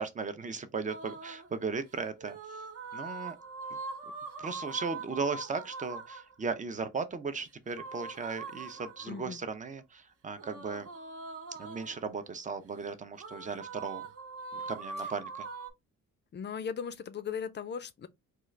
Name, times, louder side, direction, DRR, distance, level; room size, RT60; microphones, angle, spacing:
voice 1, 0.0-2.4 2.9-3.4 4.4-10.9 11.6-14.1 14.5-15.5, right 4 dB, 25° right, 0.6 m, -36 dB
sound 1, 0.9-1.5 2.2-6.3 7.7-9.3 10.4-12.1 13.2-15.7, right 4 dB, 50° right, 0.9 m, -42 dB
voice 2, 9.1-9.4 16.3-18.1, left 7 dB, 35° left, 0.5 m, -37 dB
3.6 x 2.4 x 3.1 m
cardioid pair, 90°, 30 cm